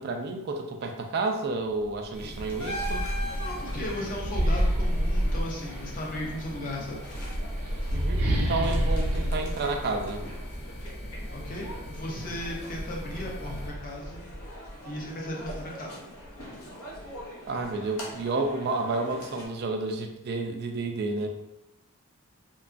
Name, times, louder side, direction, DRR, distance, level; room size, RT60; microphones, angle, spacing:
voice 1, 0.0-3.1 7.9-10.2 17.5-21.3, right 3 dB, 45° right, 5 dB, 0.3 m, -30 dB
sound 1, 1.8-2.0 2.4-6.0 6.9-10.6, equal, 85° right, 0.7 m, -28 dB
sound 2, 2.1-13.7, equal, 25° left, 0.9 m, -41 dB
sound 3, 2.4-19.5, equal, 80° left, 0.7 m, -42 dB
voice 2, 3.4-7.0 11.3-14.3 14.8-15.9, left 1 dB, 40° left, -1 dB, 0.5 m, -36 dB
2.8 x 2.3 x 2.4 m, 0.88 s
head